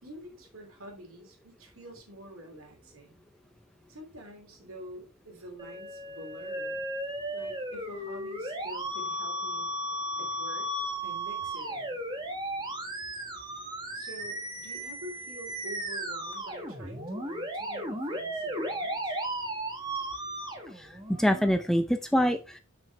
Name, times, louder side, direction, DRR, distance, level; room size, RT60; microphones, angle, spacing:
voice 1, 0.0-3.2 3.9-6.8 7.3-9.7 10.2-10.7 11.0-12.0 13.9-19.1, right 1 dB, 65° right, 2 dB, 2.8 m, -47 dB
Musical instrument, 5.6-21.5, right 1 dB, 20° right, 1.4 m, -35 dB
voice 2, 20.8-22.6, equal, ahead, 7 dB, 0.4 m, -26 dB
7.6 x 6.1 x 3.3 m, 0.30 s
head